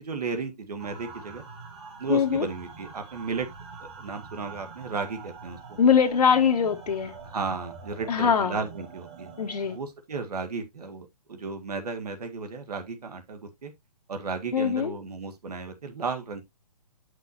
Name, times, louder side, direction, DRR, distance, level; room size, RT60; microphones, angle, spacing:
voice 1, 0.0-1.4 2.0-3.5 3.8-5.8 7.2-9.3 9.7-13.7 14.1-16.4, right 4 dB, 70° right, 1.9 m, -34 dB
sound 1, 0.8-9.8, right 5 dB, 40° right, 2.4 m, -45 dB
voice 2, 2.1-2.5 5.8-7.1 8.1-8.6 9.4-9.8 14.5-14.9, left 7 dB, 70° left, 1.0 m, -22 dB
8.3 x 6.1 x 2.7 m
hypercardioid pair, 175°, 21 cm